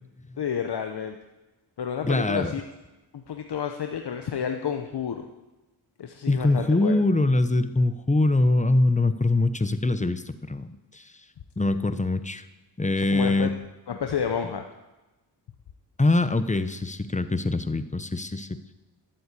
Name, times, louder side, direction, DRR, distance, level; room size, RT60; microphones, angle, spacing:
voice 1, 0.4-1.2 1.8-2.6 3.1-5.3 6.0-6.9 13.0-13.5 13.9-14.6, left 7 dB, 60° left, 5 dB, 1.0 m, -30 dB
voice 2, 2.0-2.5 6.3-11.1 11.6-12.4 12.8-13.5 16.0-18.6, left 2 dB, 15° left, 12 dB, 0.9 m, -23 dB
12.5 x 7.8 x 8.3 m, 1.1 s
cardioid pair, 55°, 44 cm